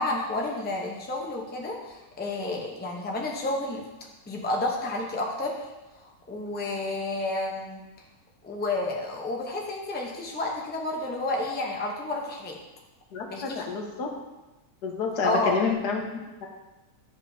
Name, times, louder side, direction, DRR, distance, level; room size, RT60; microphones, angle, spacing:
voice 1, 0.0-3.9 4.3-5.6 6.3-7.8 8.4-12.6 13.3-13.6 15.2-15.5, left 2 dB, 10° left, -1 dB, 0.5 m, -30 dB
voice 2, 13.1-14.1 14.8-16.5, left 5 dB, 85° left, 1 dB, 1.5 m, -29 dB
10.5 x 5.2 x 2.7 m, 1.1 s
omnidirectional pair, 1.7 m